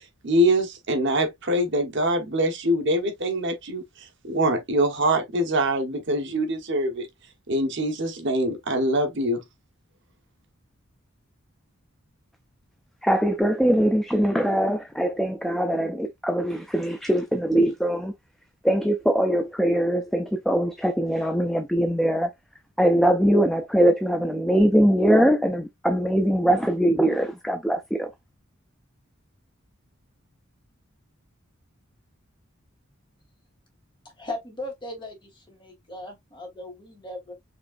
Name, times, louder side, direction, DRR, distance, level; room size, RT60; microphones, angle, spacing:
voice 1, 0.2-3.8 4.2-7.1 7.5-9.4, right 1 dB, 60° right, 1.2 m, -24 dB
voice 2, 13.0-18.1 18.6-22.3 22.8-28.1, equal, ahead, 0.4 m, -22 dB
voice 3, 34.0-37.3, left 1 dB, 25° left, 2.2 m, -38 dB
5.1 x 3.5 x 2.5 m
head